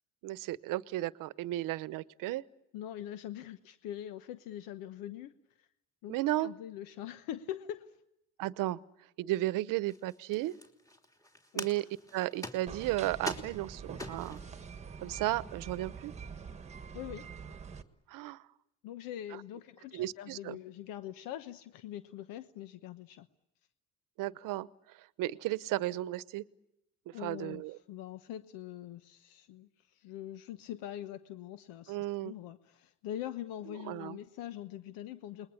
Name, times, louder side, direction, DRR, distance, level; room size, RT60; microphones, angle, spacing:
voice 1, 0.2-2.4 6.1-6.5 8.4-8.8 9.2-10.5 11.5-11.8 12.1-14.4 15.0-16.1 18.1-18.4 19.9-20.6 24.2-24.7 25.2-26.4 27.2-27.7 31.9-32.3 33.9-34.2, right 16 dB, 70° right, 17 dB, 1.0 m, -34 dB
voice 2, 2.7-5.3 5.6-5.7 6.0-8.0 11.5-11.7 16.9-17.3 18.8-23.3 27.1-35.5, left 11 dB, 80° left, 11 dB, 1.1 m, -43 dB
sound 1, 9.9-14.5 15.2-15.3 15.5-16.0, left 1 dB, 10° left, 3.0 m, -44 dB
sound 2, 12.7-17.8, right 6 dB, 20° right, 1.5 m, -45 dB
29.5 x 21.0 x 8.5 m, 0.84 s
cardioid pair, 140°, 34 cm